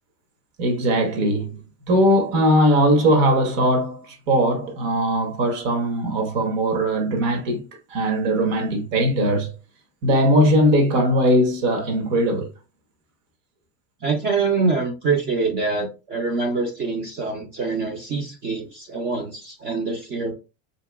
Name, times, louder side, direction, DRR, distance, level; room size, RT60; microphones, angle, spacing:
voice 1, 0.6-1.6 1.9-7.6 7.9-9.5 10.0-12.5, equal, 60° right, 1.1 m, -20 dB
voice 2, 14.0-20.3, right 4 dB, 25° right, 0.4 m, -25 dB
3.2 x 2.8 x 2.2 m
cardioid pair, 160°, 38 cm